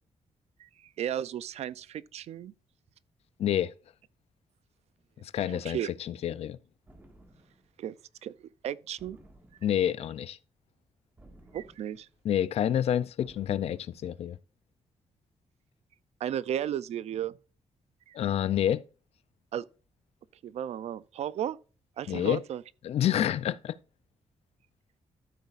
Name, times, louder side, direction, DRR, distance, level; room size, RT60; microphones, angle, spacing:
voice 1, 0.6-2.5 5.5-5.9 7.8-7.9 8.2-9.2 9.8-9.9 11.5-12.1 16.2-17.3 18.1-18.2 19.5-19.6 20.4-21.6 22.0-22.6, right 10 dB, 75° right, 0.5 m, -34 dB
voice 2, 3.4-3.7 5.2-6.6 9.6-10.4 12.2-14.4 18.1-18.8 22.1-22.4 22.8-23.8, left 10 dB, 65° left, 0.5 m, -28 dB
sound 1, 6.9-7.7 9.0-9.9 11.2-12.2 13.2-14.0, right 1 dB, 15° right, 1.8 m, -56 dB
13.5 x 8.1 x 2.5 m
wide cardioid pair, 175°, 11 cm